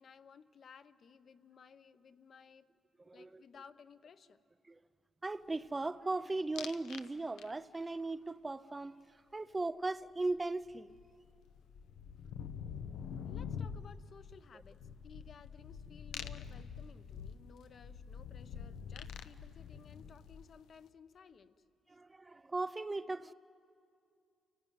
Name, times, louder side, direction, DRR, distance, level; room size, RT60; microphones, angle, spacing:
voice 1, 0.0-2.7 3.1-4.4 12.2-12.3 13.3-14.8 15.0-21.6, left 6 dB, 45° left, 0.8 m, -58 dB
voice 2, 3.1-3.4 4.7-4.8 5.2-9.0 9.3-11.0 21.9-23.3, right 2 dB, 15° right, 0.5 m, -38 dB
sound 1, 6.6-7.1 7.4-7.9 10.3-10.4 10.6-20.7, left 7 dB, 80° left, 0.8 m, -46 dB
29.0 x 17.5 x 9.3 m
cardioid pair, 145°, 0 cm